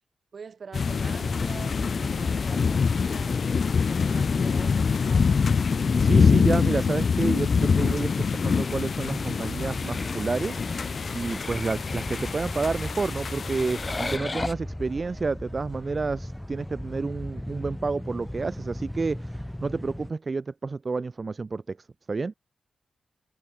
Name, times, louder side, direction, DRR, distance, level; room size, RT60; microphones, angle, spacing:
voice 1, 0.3-5.5, right 5 dB, 60° right, 1.9 m, -45 dB
sound 1, 0.7-14.2, left 5 dB, 60° left, 0.5 m, -25 dB
sound 2, 1.2-20.1, left 1 dB, 5° left, 1.1 m, -39 dB
voice 2, 6.0-10.9 11.1-22.3, right 4 dB, 40° right, 0.5 m, -30 dB
sound 3, 7.8-14.5, left 2 dB, 25° left, 1.4 m, -38 dB
cardioid pair, 85°, 0 cm